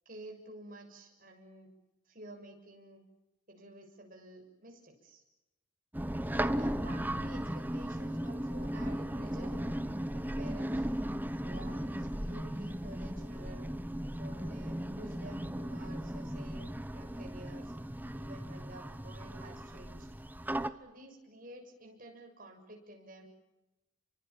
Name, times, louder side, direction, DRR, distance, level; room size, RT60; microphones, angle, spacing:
voice 1, 0.1-1.7 2.1-3.0 3.5-5.2 6.3-9.8 10.1-10.9 11.4-13.7 14.2-16.7 16.9-17.7 18.1-20.1 20.8-23.3, right 1 dB, 45° right, 2 dB, 6.9 m, -51 dB
sound 1, 5.9-20.7, right 1 dB, 10° right, 0.9 m, -36 dB
29.5 x 24.5 x 7.2 m, 0.98 s
head